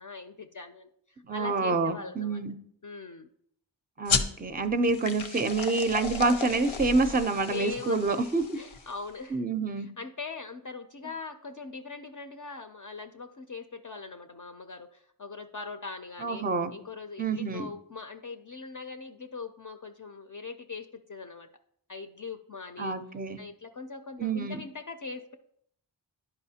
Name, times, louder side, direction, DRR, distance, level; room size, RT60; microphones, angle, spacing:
voice 1, 0.0-2.4 2.8-3.3 7.5-8.2 8.5-9.4 9.8-16.4 16.7-21.5 21.9-23.0 23.4-25.4, left 4 dB, 45° left, 6 dB, 0.5 m, -41 dB
voice 2, 1.3-2.5 4.0-8.6 9.3-9.9 16.2-16.7 17.2-17.7 22.8-23.4 24.2-24.6, right 3 dB, 20° right, 10 dB, 0.5 m, -27 dB
sound 1, 4.1-9.1, left 5 dB, 80° left, 0.7 m, -34 dB
10.5 x 4.8 x 2.8 m, 0.68 s
wide cardioid pair, 45°, 46 cm